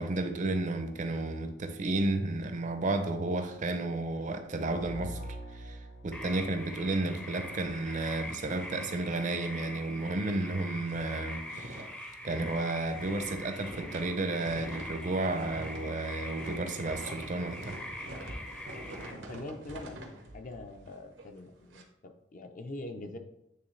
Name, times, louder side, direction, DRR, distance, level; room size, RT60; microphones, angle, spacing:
voice 1, 0.0-5.2 5.5-11.8 12.2-17.8, right 2 dB, 45° right, 8 dB, 0.6 m, -32 dB
sound 1, 4.6-7.5, right 1 dB, 85° left, 0.6 m, -44 dB
sound 2, 6.1-19.1, left 1 dB, 5° left, 0.6 m, -43 dB
sound 3, 7.7-9.9 10.2-10.3 10.7-21.8, right 1 dB, 85° right, 1.0 m, -47 dB
voice 2, 19.1-20.1 20.3-23.2, left 2 dB, 45° left, 6 dB, 0.6 m, -43 dB
8.7 x 3.3 x 3.2 m, 0.82 s
head